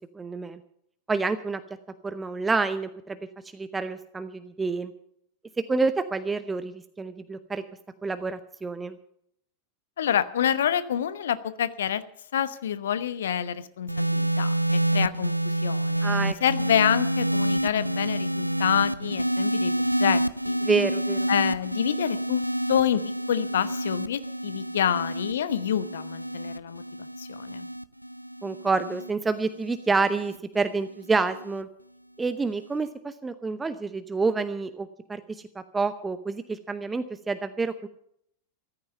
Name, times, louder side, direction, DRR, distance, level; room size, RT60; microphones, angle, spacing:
voice 1, 0.1-0.6 1.1-1.6 2.0-3.2 3.5-4.9 5.7-7.6 8.0-9.0 16.0-16.3 20.6-21.3 28.4-31.7 32.2-37.9, right 4 dB, 15° right, 11 dB, 0.8 m, -28 dB
voice 2, 10.0-12.0 12.3-16.1 16.4-20.6 21.3-22.4 22.7-23.0 23.3-27.7, left 9 dB, 60° left, 14 dB, 0.9 m, -27 dB
sound 1, 13.9-30.4 31.3-31.6, right 1 dB, 90° left, 0.4 m, -28 dB
14.5 x 13.5 x 5.6 m, 0.71 s
figure-of-eight pair, 90°, 0 cm